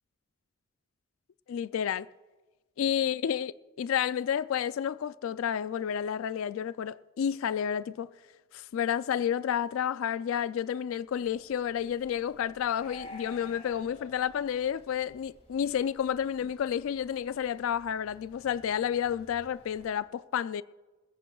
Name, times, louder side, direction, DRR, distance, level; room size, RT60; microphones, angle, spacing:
voice 1, 1.5-2.1 2.8-8.1 8.5-20.6, left 8 dB, 85° left, 0.3 m, -30 dB
sound 1, 11.1-19.9, left 2 dB, 30° left, 2.0 m, -53 dB
21.0 x 15.0 x 2.3 m
head